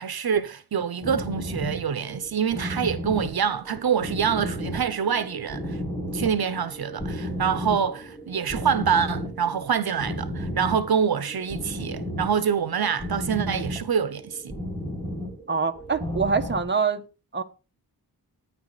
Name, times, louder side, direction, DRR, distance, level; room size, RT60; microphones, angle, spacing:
voice 1, 0.0-5.8 6.1-14.5, right 7 dB, 70° right, 1.0 m, -26 dB
sound 1, 1.0-16.6, equal, 10° left, 5.1 m, -34 dB
voice 2, 15.5-17.0 17.3-17.4, right 5 dB, 30° right, 1.4 m, -25 dB
14.5 x 9.8 x 4.1 m
wide cardioid pair, 155°, 39 cm